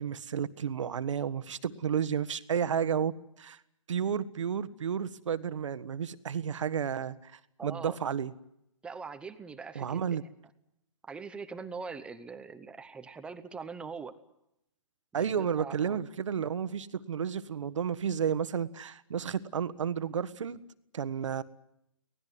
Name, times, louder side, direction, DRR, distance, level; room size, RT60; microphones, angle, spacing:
voice 1, 0.0-3.1 3.4-3.6 3.9-8.3 9.7-10.2 15.1-20.6 20.9-21.4, right 8 dB, 70° right, 15 dB, 1.4 m, -32 dB
voice 2, 7.6-8.0 8.8-10.0 11.0-14.2 15.2-16.0, right 5 dB, 5° right, 11 dB, 0.9 m, -42 dB
24.5 x 18.5 x 9.5 m, 0.82 s
hypercardioid pair, 155°, 16 cm